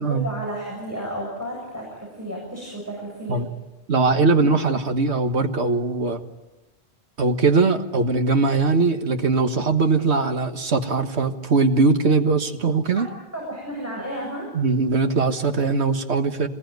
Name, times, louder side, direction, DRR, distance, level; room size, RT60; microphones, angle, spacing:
voice 1, 0.1-3.4 12.9-13.0 13.3-14.5, equal, 15° right, -3 dB, 8.0 m, -32 dB
voice 2, 3.9-6.2 7.2-13.1 14.5-16.5, right 3 dB, 75° right, 7 dB, 1.8 m, -20 dB
26.0 x 21.0 x 9.4 m, 1.1 s
omnidirectional pair, 1.1 m